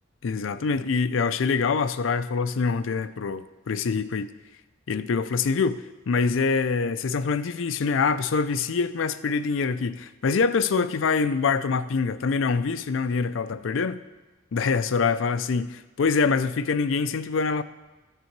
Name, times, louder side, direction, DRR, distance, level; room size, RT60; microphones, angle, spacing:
voice 1, 0.2-4.3 4.9-14.0 14.5-17.6, left 5 dB, 80° left, 12 dB, 0.5 m, -25 dB
14.0 x 6.7 x 4.6 m, 1.2 s
head